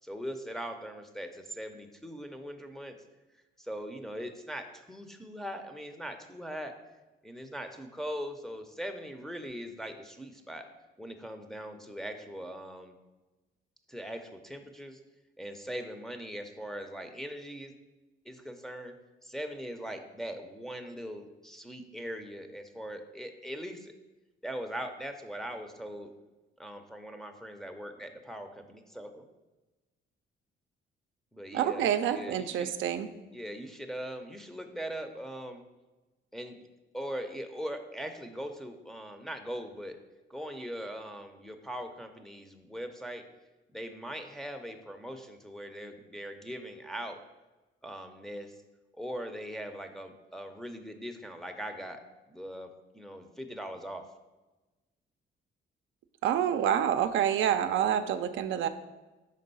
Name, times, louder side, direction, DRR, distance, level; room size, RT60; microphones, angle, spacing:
voice 1, 0.0-3.0 3.6-6.8 7.2-10.7 11.0-13.0 13.9-15.0 15.4-17.7 18.2-18.9 19.2-23.9 24.4-26.1 26.6-29.2 31.3-32.7 33.3-35.6 36.3-36.6 36.9-40.0 40.3-43.2 43.7-47.2 47.8-48.6 49.0-52.0 52.3-54.1, equal, ahead, 4 dB, 0.6 m, -40 dB
voice 2, 31.5-33.1 56.2-58.7, right 9 dB, 75° right, 8 dB, 0.4 m, -27 dB
5.3 x 3.7 x 5.4 m, 1.1 s
cardioid pair, 90°, 20 cm